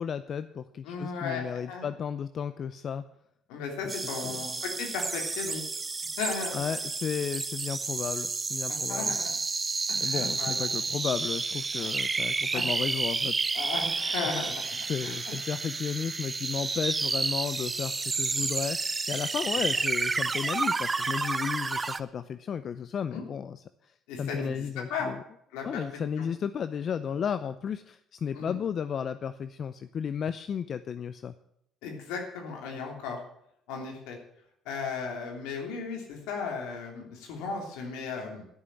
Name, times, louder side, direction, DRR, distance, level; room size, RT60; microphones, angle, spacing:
voice 1, 0.0-3.1 4.2-4.4 6.5-9.1 10.0-13.4 14.1-14.2 14.8-18.8 19.1-25.2 25.6-31.3, left 7 dB, 50° left, 12 dB, 0.6 m, -33 dB
voice 2, 0.8-1.9 3.5-5.6 6.2-6.7 8.7-9.3 9.9-10.7 11.8-11.9 12.5-12.6 13.5-14.5 15.0-15.2 23.1-23.2 24.1-25.1 25.5-25.8 26.2-26.3 28.3-28.6 31.8-33.2 33.7-34.2 34.6-38.4, left 5 dB, 85° left, 2 dB, 3.1 m, -36 dB
sound 1, 3.9-22.0, right 4 dB, 25° right, 0.7 m, -31 dB
12.5 x 6.9 x 8.8 m, 0.73 s
supercardioid pair, 80°, 0 cm